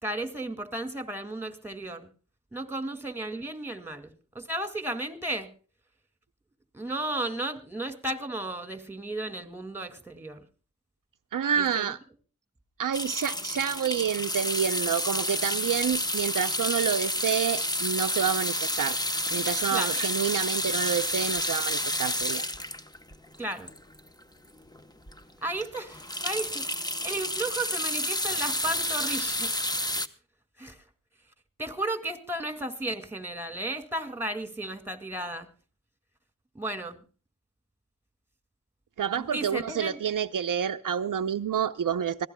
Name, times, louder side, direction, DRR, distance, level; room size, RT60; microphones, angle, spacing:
voice 1, 0.0-2.1 2.5-5.5 6.7-10.4 11.6-11.9 19.7-19.9 23.4-23.7 25.4-26.7 27.0-29.5 30.6-30.8 31.6-35.5 36.5-37.0 39.1-40.0, right 1 dB, 5° right, 2.1 m, -34 dB
voice 2, 11.3-12.0 12.8-19.0 19.3-22.4 39.0-42.3, right 8 dB, 65° right, 0.7 m, -28 dB
sound 1, 12.9-24.2 24.7-24.8 25.1-25.2 25.6-30.1, left 1 dB, 10° left, 0.9 m, -30 dB
25.0 x 17.0 x 2.2 m
wide cardioid pair, 100°, 34 cm